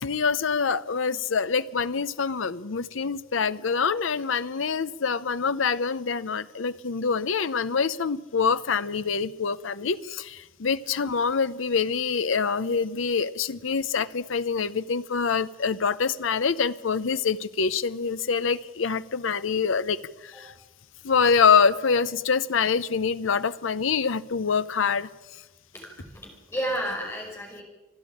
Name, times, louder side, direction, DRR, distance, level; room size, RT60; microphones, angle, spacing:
voice 1, 0.0-20.0 20.2-20.5 21.0-25.1, left 5 dB, 80° left, 14 dB, 0.7 m, -25 dB
voice 2, 25.7-27.6, equal, 10° left, -1 dB, 5.2 m, -32 dB
26.5 x 10.5 x 9.7 m, 1.1 s
head